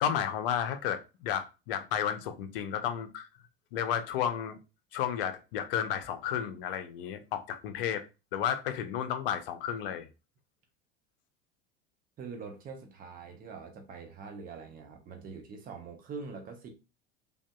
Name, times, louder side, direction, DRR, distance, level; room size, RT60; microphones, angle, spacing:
voice 1, 0.0-3.3 3.7-4.6 4.9-8.0 8.3-10.1, left 9 dB, 65° left, 0.6 m, -32 dB
voice 2, 12.2-16.7, right 5 dB, 30° right, 0.7 m, -44 dB
3.4 x 2.6 x 2.3 m
figure-of-eight pair, 75°, 30 cm